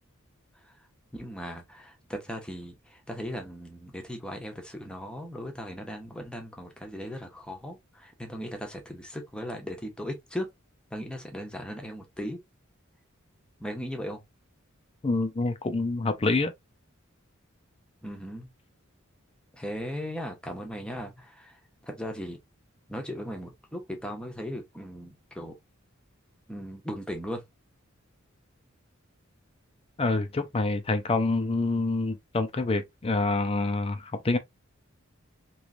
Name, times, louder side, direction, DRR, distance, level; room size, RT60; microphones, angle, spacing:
voice 1, 1.1-10.5 10.9-12.4 13.6-14.2 18.0-18.5 19.5-22.4 22.9-25.6 26.5-27.4, equal, 5° left, 0.9 m, -37 dB
voice 2, 15.0-16.5 30.0-34.4, left 3 dB, 30° left, 0.5 m, -27 dB
3.1 x 3.0 x 2.4 m
head